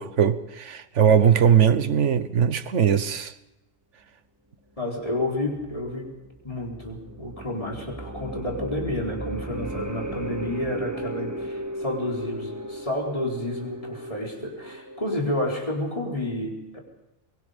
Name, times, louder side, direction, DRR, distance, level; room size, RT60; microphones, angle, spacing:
voice 1, 0.0-3.3, right 8 dB, 65° right, 1.3 m, -20 dB
voice 2, 4.8-6.2 6.4-16.8, left 1 dB, 25° left, 4.4 m, -30 dB
sound 1, 5.3-15.6, right 1 dB, 15° right, 1.5 m, -36 dB
23.5 x 23.0 x 5.3 m
omnidirectional pair, 1.4 m